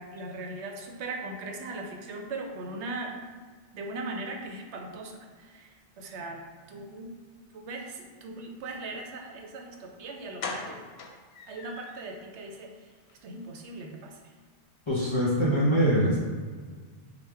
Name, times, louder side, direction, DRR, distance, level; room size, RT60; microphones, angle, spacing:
voice 1, 0.0-3.2 3.7-5.7 6.0-7.1 7.5-10.8 11.5-12.7 13.2-14.2, right 2 dB, 75° right, 2 dB, 0.9 m, -39 dB
sound 1, 9.7-9.8 10.4-12.2 12.5-12.6 13.0-13.1 13.4-13.5, left 3 dB, 70° left, 0.8 m, -39 dB
voice 2, 14.9-16.2, equal, 35° left, -6 dB, 0.5 m, -23 dB
5.0 x 2.1 x 3.3 m, 1.6 s
omnidirectional pair, 1.2 m